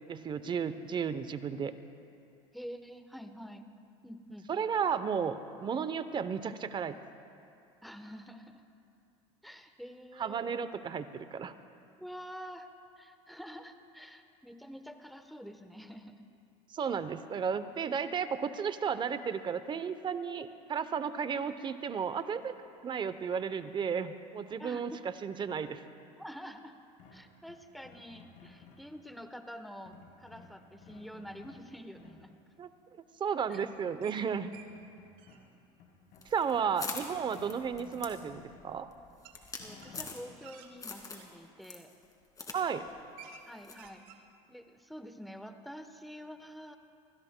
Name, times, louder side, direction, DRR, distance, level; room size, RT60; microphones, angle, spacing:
voice 1, 0.1-1.7 4.5-7.0 10.2-11.5 16.7-22.5 22.8-24.9 25.2-25.8 32.6-32.7 33.2-34.5 36.3-38.9 42.5-42.9, right 6 dB, 30° right, 12 dB, 0.7 m, -33 dB
voice 2, 2.5-3.7 4.0-4.5 7.8-8.6 9.4-10.6 12.0-12.7 13.0-16.2 24.5-25.0 26.2-26.7 27.1-32.4 33.5-33.6 39.3-41.9 43.5-44.2 44.5-46.8, equal, ahead, 7 dB, 1.0 m, -47 dB
sound 1, 27.0-28.9 29.9-31.6 31.9-32.4 33.7-33.8 34.1-35.4 35.8-37.1 37.4-38.6 39.1-40.0, left 5 dB, 65° left, 3.4 m, -56 dB
sound 2, 33.5-34.2 34.5-34.7 35.0-35.4 37.7-37.8 39.2-39.4 39.8-41.3 42.0-42.2 42.6-42.7 42.9-43.5 43.7-44.2, right 8 dB, 75° right, 1.2 m, -53 dB
sound 3, 36.2-40.5 40.8-41.3 41.6-42.6 42.9-43.0 43.6-43.9, left 4 dB, 25° left, 2.1 m, -43 dB
25.5 x 16.5 x 2.2 m, 2.5 s
supercardioid pair, 100°, 14 cm